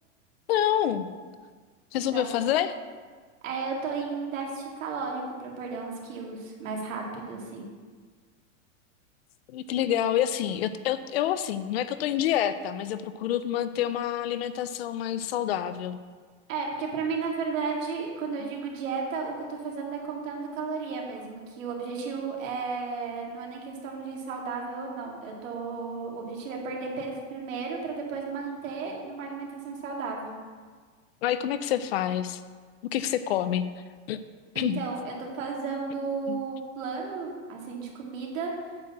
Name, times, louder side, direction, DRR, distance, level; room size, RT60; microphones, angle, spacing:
voice 1, 0.5-1.1 1.9-2.8 9.5-16.0 18.4-18.5 31.2-32.4 32.9-33.7 34.1-34.2 34.6-34.8 36.3-36.4, left 11 dB, 55° left, 13 dB, 0.5 m, -27 dB
voice 2, 3.4-7.6 16.5-30.3 34.5-38.5, right 4 dB, 90° right, -1 dB, 2.3 m, -34 dB
8.8 x 4.5 x 7.2 m, 1.5 s
supercardioid pair, 175°, 38 cm